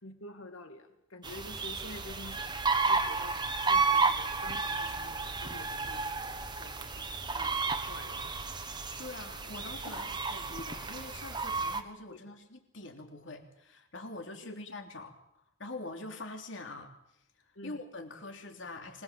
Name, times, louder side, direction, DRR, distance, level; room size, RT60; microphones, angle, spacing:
voice 1, 0.0-3.4 3.7-8.4 9.8-10.1 12.1-12.2 14.4-14.5 17.6-17.8, left 2 dB, 80° left, 7 dB, 2.3 m, -49 dB
sound 1, 1.2-11.8, right 4 dB, 20° right, 1.4 m, -32 dB
voice 2, 9.0-15.1 15.6-16.9 17.6-19.0, left 2 dB, 60° left, 4 dB, 3.3 m, -44 dB
25.0 x 20.5 x 7.6 m, 0.80 s
head